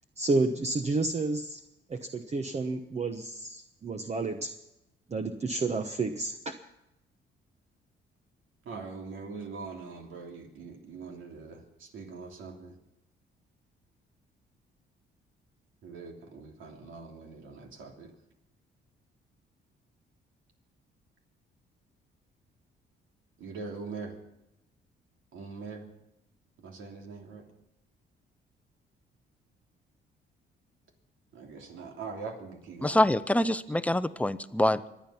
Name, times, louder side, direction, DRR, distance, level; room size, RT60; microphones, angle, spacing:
voice 1, 0.2-1.6 1.9-4.5 5.1-6.5, right 3 dB, 35° right, 6 dB, 1.1 m, -30 dB
voice 2, 8.6-12.8 15.8-18.1 23.4-24.2 25.3-25.9 26.6-27.4 31.3-33.0, right 4 dB, 80° right, 2 dB, 3.1 m, -42 dB
voice 3, 32.8-35.0, left 1 dB, 5° left, 14 dB, 0.7 m, -25 dB
24.5 x 9.3 x 5.8 m, 0.88 s
cardioid pair, 90°, 20 cm